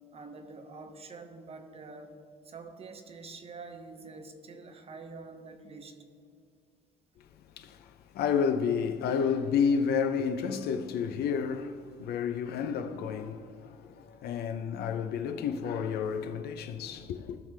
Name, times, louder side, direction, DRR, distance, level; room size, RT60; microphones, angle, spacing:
voice 1, 0.1-2.2 2.4-6.0, right 3 dB, 35° right, 1.0 m, -46 dB
voice 2, 7.6-17.4, left 6 dB, 70° left, 0.7 m, -30 dB
16.0 x 5.8 x 3.4 m
cardioid pair, 110°, 17 cm